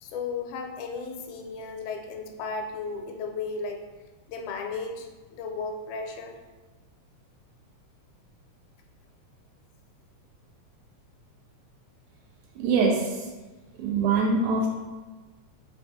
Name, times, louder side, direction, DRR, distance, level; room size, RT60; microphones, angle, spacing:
voice 1, 0.0-3.8 4.3-6.4, left 4 dB, 80° left, 3 dB, 1.9 m, -35 dB
voice 2, 12.6-13.2 13.8-14.7, right 4 dB, 85° right, -1 dB, 2.0 m, -23 dB
4.7 x 3.5 x 2.6 m, 1.2 s
omnidirectional pair, 3.5 m